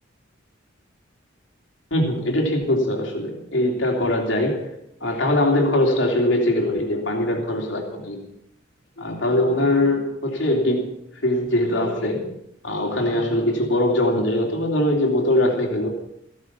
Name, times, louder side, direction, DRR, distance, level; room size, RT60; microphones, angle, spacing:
voice 1, 1.9-4.7 5.0-8.2 9.0-12.3 12.6-15.9, left 1 dB, 75° left, 1 dB, 3.2 m, -22 dB
15.0 x 11.0 x 7.1 m, 0.77 s
head